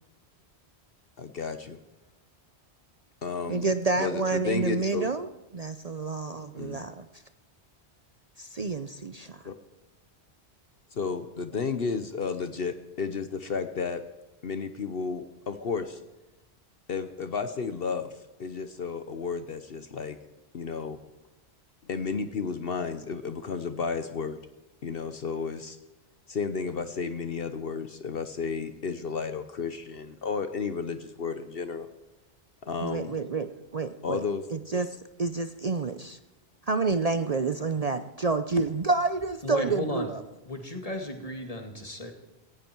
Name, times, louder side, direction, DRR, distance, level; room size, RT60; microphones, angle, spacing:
voice 1, 1.2-1.8 3.2-3.7 4.0-5.1 6.6-6.8 9.2-9.5 10.9-14.0 14.4-16.0 16.9-20.2 20.5-21.0 21.8-24.4 24.8-25.8 26.3-31.9 32.6-33.1 34.0-34.4, left 5 dB, 60° left, 10 dB, 1.1 m, -32 dB
voice 2, 3.5-7.0 8.4-9.5 32.8-34.2 34.5-36.2 36.7-40.2, right 3 dB, 40° right, 10 dB, 0.7 m, -29 dB
voice 3, 39.4-40.1 40.5-42.1, left 1 dB, 35° left, 5 dB, 2.4 m, -34 dB
18.0 x 16.0 x 4.6 m, 1.0 s
omnidirectional pair, 1.1 m